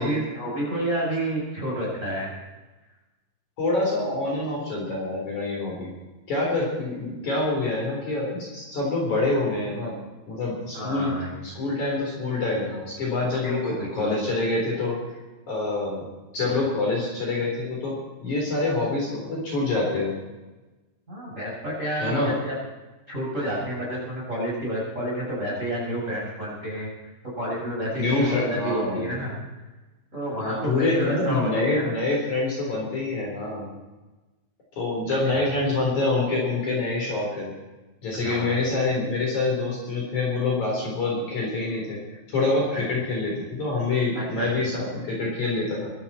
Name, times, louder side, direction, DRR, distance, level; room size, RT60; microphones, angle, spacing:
voice 1, 0.0-2.4 10.7-11.4 13.4-14.1 21.1-22.6 23.1-26.9 27.4-29.5 30.1-31.9 35.1-35.4 38.2-38.6 42.7-42.8 44.1-44.5, right 1 dB, 15° right, -5 dB, 7.4 m, -30 dB
voice 2, 3.6-5.9 6.3-11.1 11.4-13.6 13.9-15.0 15.5-16.1 16.3-20.1 22.0-22.3 28.0-29.1 30.4-33.7 34.8-37.5 38.0-42.0 42.3-45.9, left 2 dB, 45° left, -3 dB, 5.2 m, -26 dB
24.5 x 12.5 x 4.4 m, 1.1 s
omnidirectional pair, 5.2 m